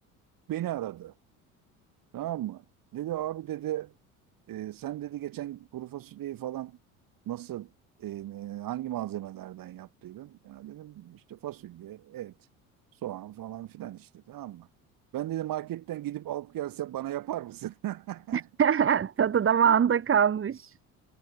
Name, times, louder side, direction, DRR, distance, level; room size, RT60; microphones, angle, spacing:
voice 1, 0.5-1.1 2.1-2.6 2.9-3.9 4.5-6.8 7.3-7.7 8.0-12.3 13.0-14.7 15.1-18.5, right 13 dB, 50° right, 3.8 m, -36 dB
voice 2, 18.3-20.9, right 8 dB, 30° right, 1.4 m, -24 dB
hypercardioid pair, 60°, 42 cm